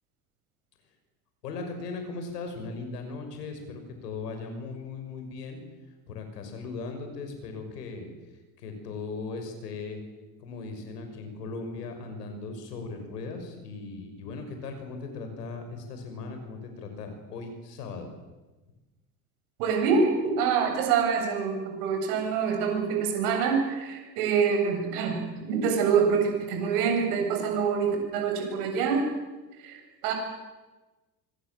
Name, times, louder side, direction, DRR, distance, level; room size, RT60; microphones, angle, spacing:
voice 1, 1.4-5.6 6.1-8.1 8.6-10.0 10.4-18.1, left 4 dB, 80° left, 6 dB, 6.2 m, -38 dB
voice 2, 19.6-25.2 25.4-29.0 29.6-30.1, right 6 dB, 70° right, 4 dB, 7.9 m, -26 dB
25.0 x 23.5 x 7.7 m, 1.1 s
hypercardioid pair, 70°, 47 cm